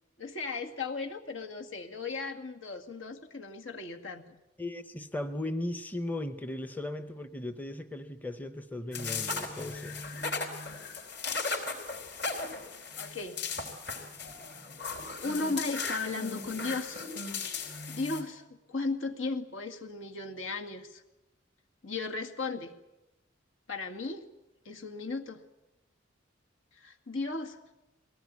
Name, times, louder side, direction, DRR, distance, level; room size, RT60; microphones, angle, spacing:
voice 1, 0.2-4.4 13.0-13.4 15.2-17.0 17.9-21.0 21.8-22.7 23.7-24.3 24.7-25.4 26.7-27.6, left 3 dB, 80° left, 4 dB, 2.1 m, -36 dB
voice 2, 4.6-10.0, left 1 dB, 10° left, 10 dB, 0.7 m, -37 dB
sound 1, 8.9-18.2, left 4 dB, 55° left, 4.4 m, -37 dB
21.5 x 18.0 x 9.6 m, 0.98 s
head